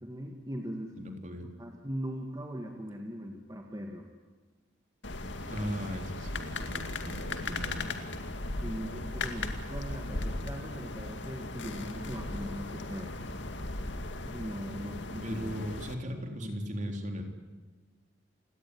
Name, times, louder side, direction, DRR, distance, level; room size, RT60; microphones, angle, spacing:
voice 1, 0.0-1.0 1.6-4.1 8.6-13.2 14.3-15.6 16.0-16.5, equal, 20° right, 3 dB, 2.1 m, -40 dB
voice 2, 1.0-1.5 5.5-8.0 15.2-17.2, equal, 40° right, 4 dB, 3.7 m, -38 dB
sound 1, 5.0-15.9, left 2 dB, 70° left, 2.2 m, -37 dB
29.5 x 18.5 x 9.9 m, 1.4 s
head